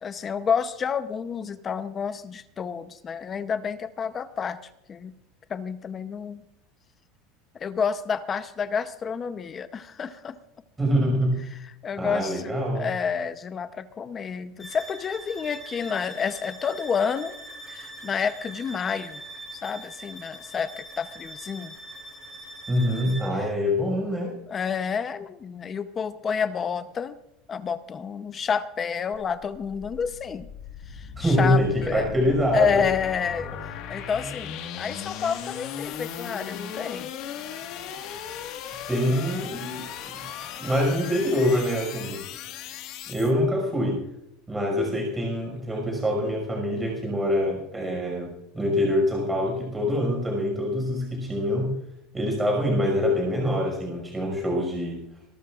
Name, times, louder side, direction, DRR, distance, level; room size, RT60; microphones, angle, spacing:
voice 1, 0.0-4.6 4.9-5.1 5.5-6.4 7.5-10.4 11.5-17.3 17.7-19.2 19.6-21.7 24.5-27.2 27.5-30.5 30.9-32.1 32.5-37.1, left 6 dB, 25° left, 12 dB, 0.7 m, -29 dB
voice 2, 10.8-11.4 12.0-12.9 22.7-24.4 31.2-32.9 38.9-39.9 40.6-42.2 43.1-44.0 44.5-51.7 52.1-55.0, equal, 10° right, 0 dB, 5.5 m, -25 dB
sound 1, 14.6-23.4, right 1 dB, 5° left, 4.9 m, -42 dB
sound 2, 29.1-43.3, left 8 dB, 50° left, 1.6 m, -37 dB
26.0 x 13.5 x 2.5 m, 0.80 s
cardioid pair, 160°, 0 cm